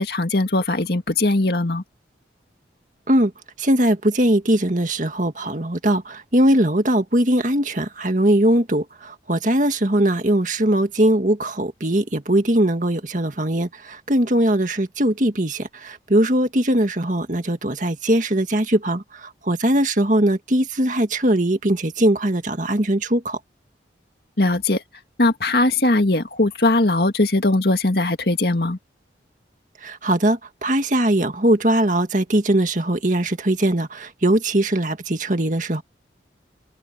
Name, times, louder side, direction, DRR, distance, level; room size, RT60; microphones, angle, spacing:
voice 1, 0.0-1.8 24.4-24.8 25.2-28.8, left 2 dB, 60° left, 2.1 m, -20 dB
voice 2, 3.6-19.0 19.5-23.4 29.8-35.8, right 1 dB, 45° right, 2.0 m, -20 dB
head